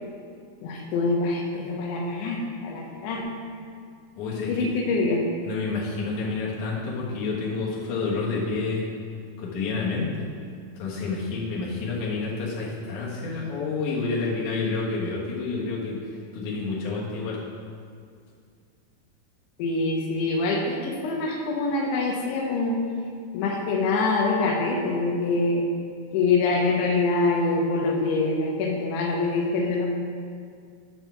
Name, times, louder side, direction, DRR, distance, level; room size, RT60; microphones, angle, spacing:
voice 1, 0.6-3.3 4.4-5.2 19.6-22.8 23.3-25.6 26.1-29.9, left 3 dB, 85° left, 0 dB, 1.7 m, -25 dB
voice 2, 4.2-4.7 5.4-8.8 9.4-10.3 10.8-16.0 16.3-17.4, left 4 dB, 60° left, -5 dB, 2.2 m, -29 dB
7.1 x 4.5 x 6.9 m, 2.2 s
omnidirectional pair, 5.0 m